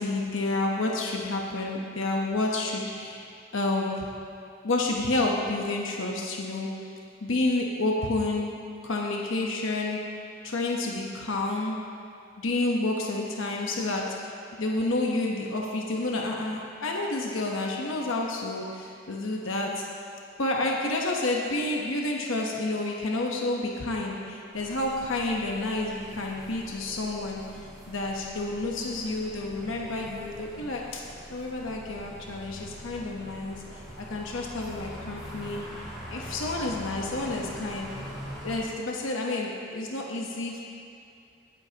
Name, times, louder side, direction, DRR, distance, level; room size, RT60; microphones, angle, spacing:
voice 1, 0.0-3.3 3.5-4.1 4.6-6.9 7.2-8.5 8.8-10.0 10.4-11.8 12.4-14.3 14.6-19.8 20.4-27.4 27.9-31.0 31.3-35.7 36.1-37.9 38.4-40.6, left 2 dB, 90° left, -1 dB, 1.0 m, -29 dB
sound 1, 24.5-38.6, equal, ahead, 2.5 m, -43 dB
19.0 x 8.4 x 2.9 m, 2.4 s
head